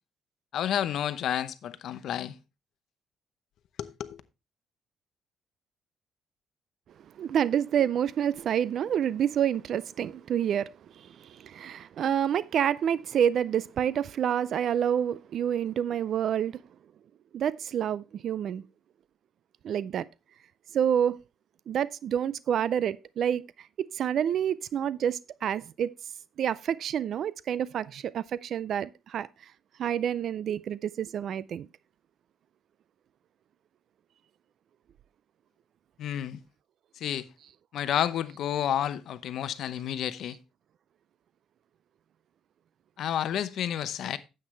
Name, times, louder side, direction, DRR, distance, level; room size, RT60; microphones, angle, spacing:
voice 1, 0.5-2.4 3.8-4.2 36.0-36.4 37.0-37.3 37.7-40.4 43.0-44.2, left 10 dB, 70° left, 0.8 m, -30 dB
voice 2, 7.2-16.6 17.3-18.6 19.6-20.1 20.7-21.2 21.7-25.9 26.4-29.3 29.8-31.7, right 9 dB, 60° right, 0.3 m, -28 dB
9.6 x 7.9 x 3.2 m
cardioid pair, 110°, 0 cm